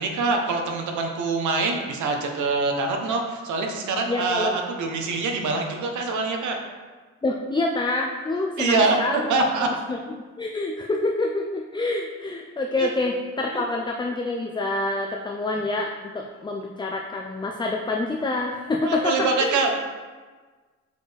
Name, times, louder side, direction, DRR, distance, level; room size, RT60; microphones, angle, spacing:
voice 1, 0.0-6.6 8.6-9.0 9.3-9.7 12.8-12.9 13.5-13.6 18.8-19.7, right 3 dB, 75° right, 3 dB, 1.0 m, -24 dB
voice 2, 4.1-4.6 7.2-9.3 9.6-10.0 10.4-19.6, left 2 dB, 15° left, 1 dB, 0.5 m, -27 dB
6.5 x 4.9 x 3.4 m, 1.4 s
cardioid pair, 90°, 30 cm